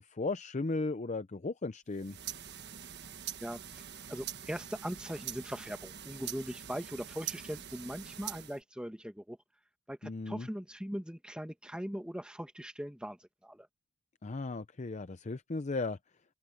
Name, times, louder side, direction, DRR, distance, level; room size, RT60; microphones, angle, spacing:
voice 1, 0.1-2.2 10.0-10.5 14.2-16.0, left 3 dB, 35° left, 0.6 m, -36 dB
sound 1, 1.9-8.6, right 10 dB, 55° right, 1.4 m, -44 dB
voice 2, 4.1-9.4 9.9-13.7, equal, 5° right, 1.5 m, -40 dB
open air
head